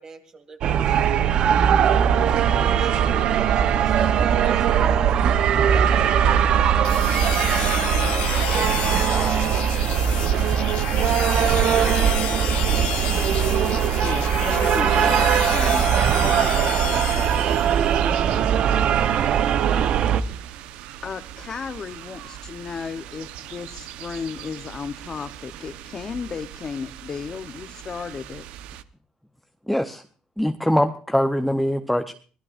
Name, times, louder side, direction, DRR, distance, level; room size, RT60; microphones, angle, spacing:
voice 1, 0.0-2.0 2.7-5.2 5.7-8.7 9.1-9.6, right 4 dB, 30° right, 7 dB, 2.1 m, -39 dB
sound 1, 0.6-20.2, right 9 dB, 55° right, 0.8 m, -20 dB
sound 2, 6.8-18.0, left 12 dB, 75° left, 1.7 m, -31 dB
voice 2, 14.0-17.7 21.0-28.4, left 6 dB, 30° left, 10 dB, 0.8 m, -34 dB
sound 3, 14.7-28.8, right 11 dB, 85° right, 0.9 m, -40 dB
voice 3, 29.7-30.0 30.4-32.1, equal, ahead, 6 dB, 0.7 m, -22 dB
25.0 x 17.5 x 2.5 m, 0.41 s
cardioid pair, 145°, 2 cm